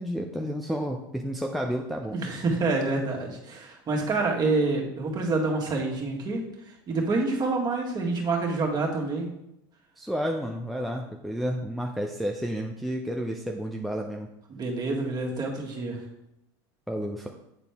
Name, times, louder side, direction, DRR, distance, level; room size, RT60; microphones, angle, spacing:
voice 1, 0.0-2.2 10.0-14.3 16.9-17.3, equal, ahead, 1 dB, 0.6 m, -31 dB
voice 2, 2.1-6.4 6.9-9.3 14.5-16.0, right 3 dB, 35° right, -1 dB, 1.9 m, -27 dB
8.8 x 4.2 x 3.5 m, 0.84 s
hypercardioid pair, 95°, 12 cm